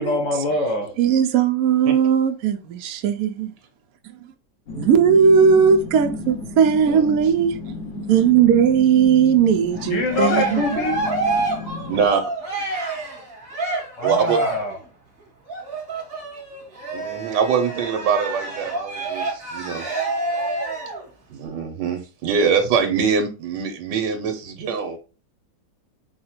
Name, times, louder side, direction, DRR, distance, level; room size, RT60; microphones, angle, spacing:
voice 1, 0.0-1.0 9.9-11.0 14.0-14.8, left 2 dB, 90° left, 1.8 m, -24 dB
voice 2, 1.0-3.5 4.7-7.6 8.1-10.6, right 7 dB, 65° right, 1.0 m, -17 dB
sound 1, 4.7-12.1, left 3 dB, 55° left, 0.9 m, -34 dB
Cheering, 9.7-14.7 15.5-21.1, right 3 dB, 35° right, 1.3 m, -27 dB
voice 3, 11.9-12.2 14.0-14.4 16.9-19.9 21.3-25.0, right 6 dB, 85° right, 1.4 m, -23 dB
4.8 x 2.1 x 4.2 m
omnidirectional pair, 1.9 m